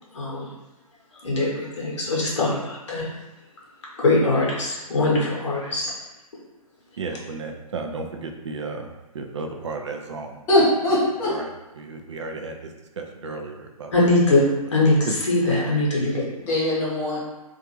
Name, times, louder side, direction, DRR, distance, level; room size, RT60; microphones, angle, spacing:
voice 1, 0.1-0.5 1.2-3.1 4.0-5.9 13.9-14.4 14.7-16.2, left 2 dB, 50° left, -4 dB, 0.9 m, -21 dB
voice 2, 7.0-12.7 13.0-13.9 14.3-14.4 15.1-15.2, right 3 dB, 50° right, 4 dB, 0.4 m, -34 dB
voice 3, 10.5-11.3 16.4-17.2, left 1 dB, 15° left, -7 dB, 0.6 m, -21 dB
2.4 x 2.4 x 3.1 m, 1.1 s
figure-of-eight pair, 130°, 19 cm